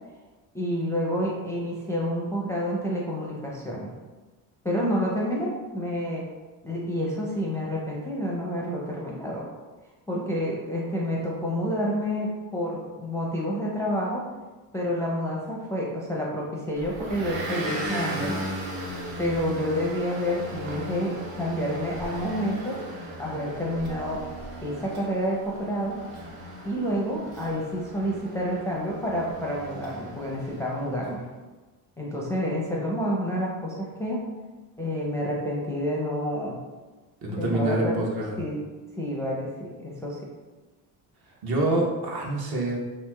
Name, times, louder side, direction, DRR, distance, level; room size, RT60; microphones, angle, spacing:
voice 1, 0.5-3.9 4.6-6.3 6.6-9.5 10.1-14.3 14.7-18.4 19.2-22.8 23.2-24.2 24.6-26.0 26.6-31.2 32.0-34.2 34.8-36.6 37.3-38.0 38.4-38.7 39.0-40.2, equal, 5° left, -4 dB, 0.5 m, -29 dB
Motor vehicle (road) / Engine, 16.8-31.0, right 1 dB, 80° right, 0.8 m, -37 dB
voice 2, 37.2-38.4 41.4-42.9, right 2 dB, 50° right, -2 dB, 0.9 m, -26 dB
2.9 x 2.8 x 2.2 m, 1.2 s
supercardioid pair, 70°, 47 cm